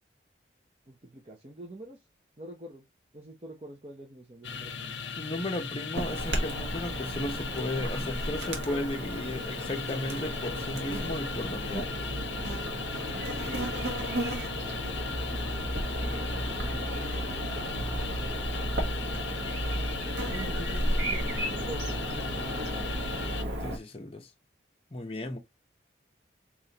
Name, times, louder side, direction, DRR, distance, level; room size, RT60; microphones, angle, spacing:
voice 1, 0.9-2.0 2.4-2.8 3.1-5.0 8.3-8.8 13.4-14.4 16.6-18.0 20.8-22.0 22.4-22.9, right 1 dB, 30° right, 0.8 m, -46 dB
sound 1, 4.4-23.4, left 6 dB, 85° left, 0.6 m, -38 dB
voice 2, 5.2-11.9 23.6-24.3 24.9-25.4, left 1 dB, 30° left, 0.7 m, -35 dB
Chirp tweet / Buzz, 5.9-23.8, right 1 dB, 80° right, 1.1 m, -33 dB
3.6 x 3.1 x 2.8 m
head